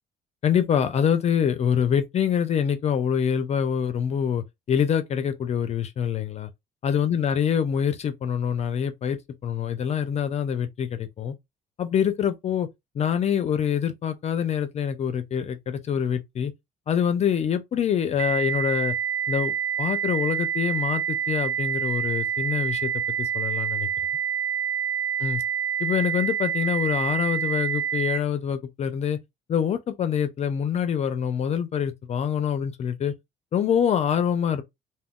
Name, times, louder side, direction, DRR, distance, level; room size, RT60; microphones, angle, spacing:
voice 1, 0.4-6.5 6.8-11.3 11.8-12.7 13.0-16.5 16.9-18.9 19.3-22.9 23.2-23.9 25.2-25.4 25.8-29.2 29.5-33.1 33.5-34.6, left 8 dB, 40° left, 0.4 m, -25 dB
sound 1, 18.2-28.2, right 8 dB, 85° right, 0.4 m, -27 dB
2.3 x 2.2 x 3.5 m
cardioid pair, 110°, 17 cm